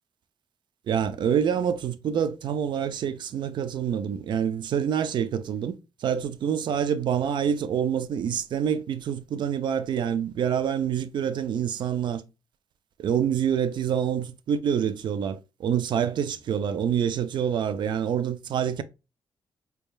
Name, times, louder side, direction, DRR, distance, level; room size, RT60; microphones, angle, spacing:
voice 1, 0.9-5.7 6.0-12.2 13.0-18.8, right 8 dB, 75° right, 0.5 m, -26 dB
4.2 x 3.4 x 2.2 m
cardioid pair, 120°, 8 cm